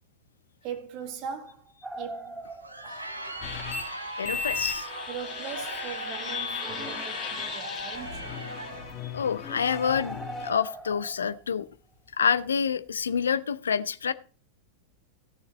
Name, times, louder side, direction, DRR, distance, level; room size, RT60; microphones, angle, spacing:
voice 1, 0.6-2.5 2.8-3.1 5.1-8.7, right 8 dB, 40° right, 1.7 m, -40 dB
sound 1, 1.8-3.5 3.8-3.9 4.4-4.5 5.2-5.3 6.4-7.4 7.8-8.1 8.4-8.5 8.9-9.0 9.2-9.3 9.6-12.7 13.0-13.3, right 2 dB, 5° right, 0.9 m, -41 dB
Crowd, 2.4-9.0, right 1 dB, 85° right, 1.3 m, -39 dB
sound 2, 3.4-10.5, left 6 dB, 30° left, 2.1 m, -36 dB
voice 2, 4.2-4.9 9.0-11.7 12.2-14.1, left 7 dB, 70° left, 0.6 m, -27 dB
16.5 x 6.7 x 4.1 m
figure-of-eight pair, 90°, 0 cm